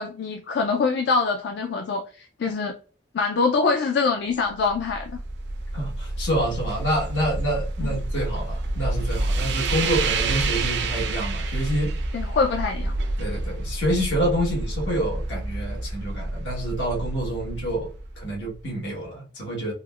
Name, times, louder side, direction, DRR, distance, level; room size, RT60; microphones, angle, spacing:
voice 1, 0.0-2.7 3.1-5.2 7.8-8.0 12.1-12.9, left 4 dB, 65° left, 0.4 m, -24 dB
sound 1, 4.5-18.6, right 2 dB, 65° right, 0.5 m, -28 dB
voice 2, 5.7-11.9 13.2-19.7, equal, 85° left, 1.2 m, -27 dB
3.7 x 2.1 x 2.3 m
head